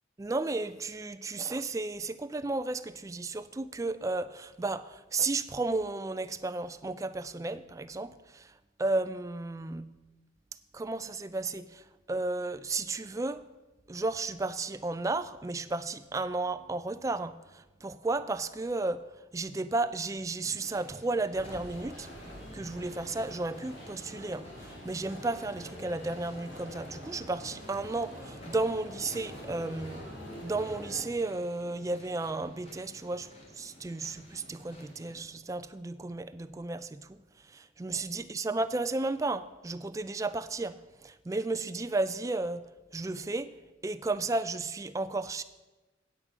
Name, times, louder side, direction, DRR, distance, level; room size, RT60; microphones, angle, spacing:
voice 1, 0.2-8.5 8.8-9.9 10.7-13.4 13.9-19.0 19.3-22.1 22.5-30.1 30.4-43.5 43.8-45.4, right 3 dB, 15° right, 0.3 m, -33 dB
sound 1, 20.4-35.2, left 1 dB, 35° left, 1.8 m, -54 dB
sound 2, 21.3-31.0, equal, 75° left, 3.1 m, -45 dB
9.0 x 8.1 x 5.9 m
head